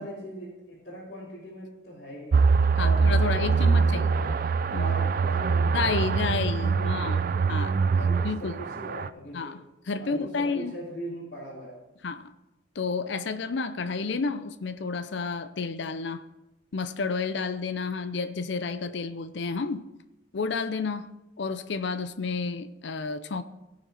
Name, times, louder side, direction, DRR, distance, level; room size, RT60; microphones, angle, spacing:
voice 1, 0.0-2.4 2.8-4.4 4.7-7.3 7.9-9.5 10.0-11.8, equal, 50° left, 3.3 m, -40 dB
sound 1, 2.3-9.1, right 5 dB, 45° right, 0.3 m, -24 dB
voice 2, 2.8-4.3 4.7-4.9 5.7-7.2 7.5-7.8 8.2-8.6 9.3-9.6 9.9-10.7 12.0-12.3 12.8-16.3 16.7-19.8 20.3-21.1 21.4-23.4, left 4 dB, 65° left, 0.6 m, -31 dB
16.5 x 5.8 x 4.3 m
head